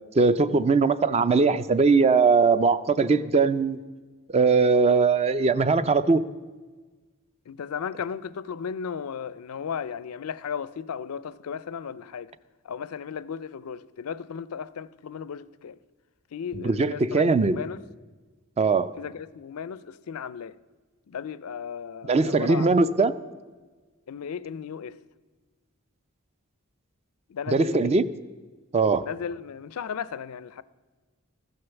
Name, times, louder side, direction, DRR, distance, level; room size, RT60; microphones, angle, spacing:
voice 1, 0.1-3.8 4.3-6.2 16.6-17.6 18.6-18.9 22.1-23.1 27.5-28.1 28.7-29.1, right 4 dB, 30° right, 0.4 m, -20 dB
voice 2, 7.5-12.3 12.6-15.8 16.3-17.8 19.0-20.5 21.1-22.9 24.1-25.0 27.3-27.9 29.0-30.6, left 7 dB, 90° left, 0.4 m, -35 dB
14.5 x 6.5 x 7.0 m
head